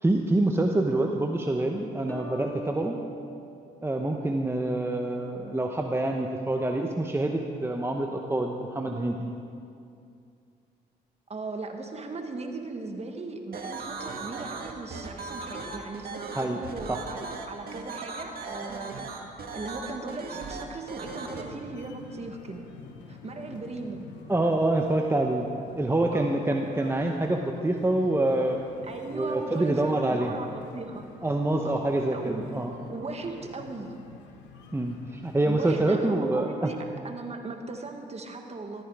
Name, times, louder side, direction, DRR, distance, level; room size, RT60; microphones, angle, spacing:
voice 1, 0.0-3.0 3.8-9.3 16.3-16.6 16.9-17.0 24.3-25.5 25.8-28.6 29.1-30.3 31.2-32.7 34.7-36.7, right 2 dB, 15° right, 2 dB, 1.0 m, -26 dB
sound 1, 2.1-4.7, right 1 dB, 10° left, 2.2 m, -42 dB
voice 2, 11.3-19.0 19.5-22.6 23.1-24.1 26.1-26.3 28.9-31.1 31.6-31.8 32.1-33.9 35.4-36.8 37.0-38.8, right 3 dB, 35° right, 4 dB, 1.7 m, -38 dB
sound 2, 13.5-21.4, right 4 dB, 55° right, 1.8 m, -38 dB
sound 3, 21.0-35.6, left 5 dB, 85° left, 1.4 m, -47 dB
14.0 x 13.5 x 4.9 m, 2.5 s
supercardioid pair, 70°, 18 cm